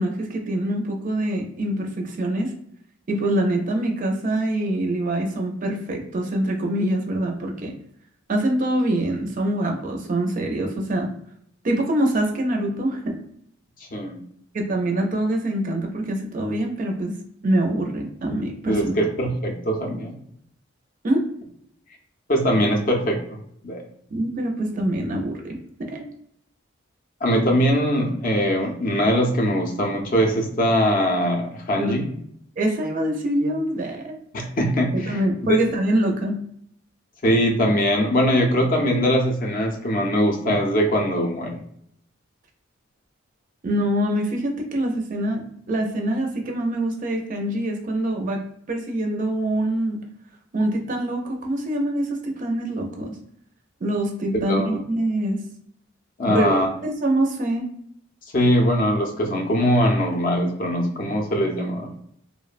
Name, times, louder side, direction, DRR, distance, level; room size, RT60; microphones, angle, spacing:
voice 1, 0.0-2.5 3.1-7.7 8.3-11.1 11.6-13.2 14.5-17.2 17.4-19.0 21.0-21.2 24.1-26.1 31.8-32.0 32.6-34.1 34.9-36.4 43.6-45.4 45.7-48.4 48.7-50.0 50.5-53.2 53.8-55.4 56.3-57.7, right 1 dB, 40° right, 2 dB, 0.4 m, -24 dB
voice 2, 18.7-20.2 22.3-23.4 23.6-23.8 27.2-32.1 34.3-35.2 37.2-41.6 54.5-54.8 56.2-56.7 58.3-61.9, equal, 40° left, 2 dB, 0.5 m, -21 dB
2.8 x 2.1 x 2.4 m, 0.70 s
head